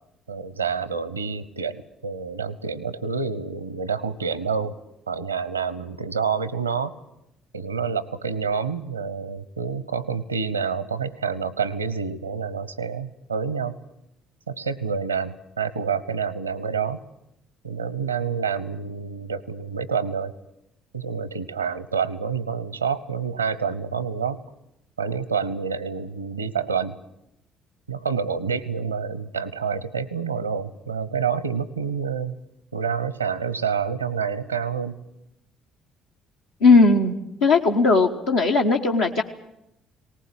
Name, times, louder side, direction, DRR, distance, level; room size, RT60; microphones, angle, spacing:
voice 1, 0.3-4.8 5.1-6.9 7.5-13.8 14.5-17.0 17.6-20.3 20.9-24.4 25.0-27.0 27.9-32.4 32.7-35.0, right 6 dB, 85° right, 18 dB, 0.8 m, -28 dB
voice 2, 36.6-37.1 37.4-39.2, left 3 dB, 70° left, -1 dB, 1.2 m, -17 dB
19.5 x 19.0 x 8.9 m, 0.82 s
figure-of-eight pair, 50°, 0 cm